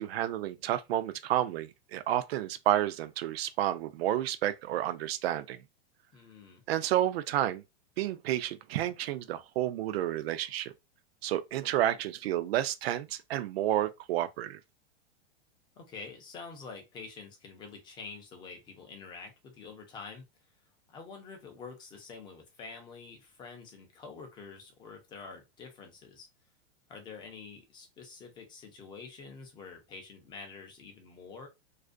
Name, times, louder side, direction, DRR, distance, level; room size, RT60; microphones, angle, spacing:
voice 1, 0.0-5.6 6.7-7.6 8.0-10.7 11.2-14.6, right 12 dB, 70° right, 0.5 m, -30 dB
voice 2, 6.1-6.6 15.8-20.2 20.9-26.3 26.9-31.5, left 4 dB, 15° left, 0.4 m, -47 dB
2.4 x 2.1 x 2.5 m
supercardioid pair, 145°, 31 cm